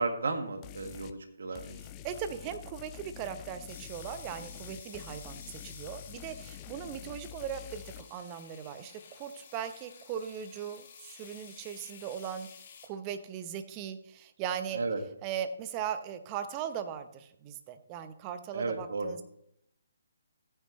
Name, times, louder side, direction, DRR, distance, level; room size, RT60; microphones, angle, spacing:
voice 1, 0.0-1.8 14.7-15.0 18.5-19.1, right 3 dB, 65° right, 6 dB, 1.9 m, -33 dB
sound 1, 0.6-1.2 1.5-8.0, left 10 dB, 25° left, 0.5 m, -47 dB
voice 2, 2.0-12.5 12.8-14.8 15.2-19.2, right 9 dB, 25° right, 9 dB, 0.9 m, -39 dB
sound 2, 3.7-12.9, left 7 dB, 40° left, 1.8 m, -52 dB
14.5 x 9.5 x 3.2 m, 0.74 s
figure-of-eight pair, 140°, 0 cm